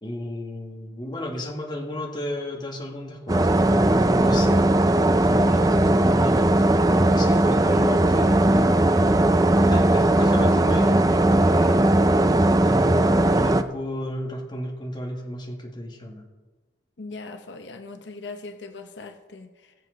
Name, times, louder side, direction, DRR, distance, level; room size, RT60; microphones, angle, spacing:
voice 1, 0.0-9.2 9.6-12.3 12.6-16.3, left 1 dB, 25° left, 0 dB, 2.0 m, -33 dB
sound 1, 3.3-13.6, right 1 dB, 20° right, 0.4 m, -18 dB
voice 2, 17.0-19.7, left 3 dB, 80° left, 7 dB, 0.8 m, -40 dB
20.5 x 7.6 x 4.0 m, 1.2 s
head